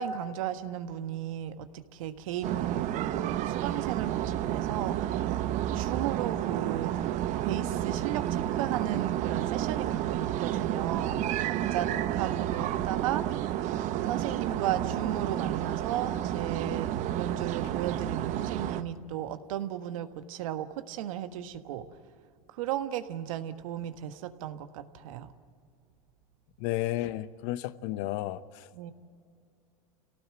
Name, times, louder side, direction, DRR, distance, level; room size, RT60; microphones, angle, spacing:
voice 1, 0.0-5.0 5.7-7.0 7.4-13.3 14.1-21.9 22.5-25.3 28.7-28.9, right 11 dB, 70° right, 9 dB, 1.5 m, -35 dB
sound 1, 2.4-18.8, right 12 dB, 45° right, 1.0 m, -31 dB
voice 2, 26.6-28.7, left 15 dB, 55° left, 14 dB, 0.9 m, -33 dB
28.0 x 18.0 x 7.6 m, 2.4 s
supercardioid pair, 120°, 18 cm